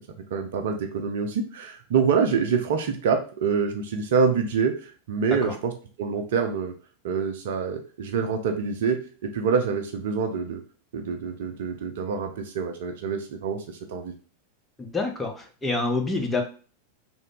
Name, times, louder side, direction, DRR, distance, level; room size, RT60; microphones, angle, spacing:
voice 1, 0.3-4.7 5.1-5.7 6.0-6.7 7.0-10.6 10.9-14.1, right 5 dB, 55° right, 5 dB, 0.5 m, -26 dB
voice 2, 14.8-16.4, left 3 dB, 10° left, 1 dB, 0.7 m, -27 dB
3.2 x 2.0 x 3.8 m, 0.39 s
figure-of-eight pair, 90°, 0 cm